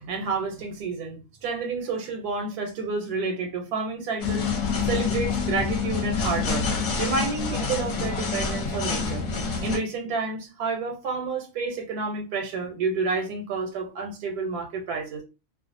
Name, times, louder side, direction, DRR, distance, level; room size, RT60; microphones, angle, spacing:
voice 1, 0.0-4.5 4.8-6.7 7.0-9.2 9.6-15.2, right 4 dB, 80° right, 1.1 m, -29 dB
sound 1, 4.2-9.8, left 5 dB, 65° left, 0.9 m, -27 dB
2.5 x 2.3 x 2.4 m
omnidirectional pair, 1.6 m